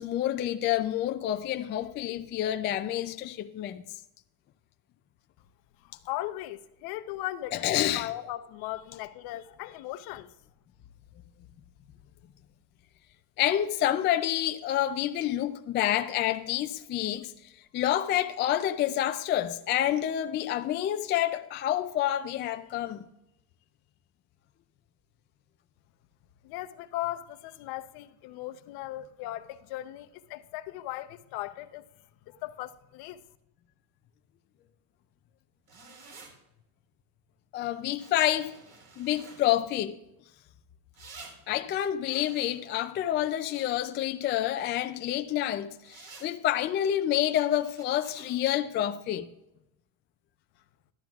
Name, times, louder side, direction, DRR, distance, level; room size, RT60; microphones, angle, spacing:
voice 1, 0.0-3.8 7.5-8.1 13.4-23.1 37.5-38.6 39.0-39.9 41.5-49.3, left 12 dB, 25° left, 0.3 m, -28 dB
voice 2, 5.8-10.3 26.4-31.9 32.3-33.2, left 15 dB, 55° left, 0.8 m, -38 dB
sound 1, 35.7-36.3 38.0-39.4 40.9-41.3 42.0-44.0 45.8-46.3 47.0-48.3, right 4 dB, 50° right, 4.1 m, -51 dB
13.5 x 12.0 x 2.4 m
supercardioid pair, 130°, 45 cm